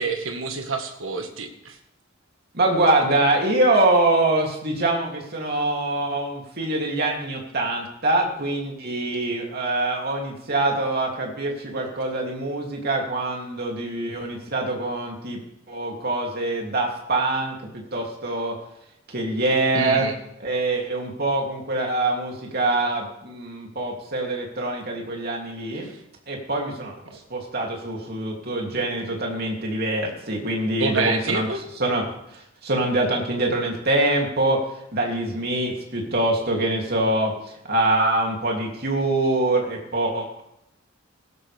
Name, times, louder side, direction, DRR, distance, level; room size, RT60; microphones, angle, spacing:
voice 1, 0.0-1.8 19.7-20.2 25.7-25.9 27.1-27.2 30.8-31.6, right 4 dB, 80° right, 4 dB, 1.7 m, -27 dB
voice 2, 2.5-15.4 15.7-17.5 17.9-18.5 19.1-20.1 20.4-25.9 26.3-26.9 27.3-31.5 31.8-32.1 32.3-34.6 34.9-37.3 37.7-40.4, right 2 dB, 50° right, 0 dB, 3.0 m, -24 dB
17.0 x 12.5 x 3.5 m, 0.76 s
head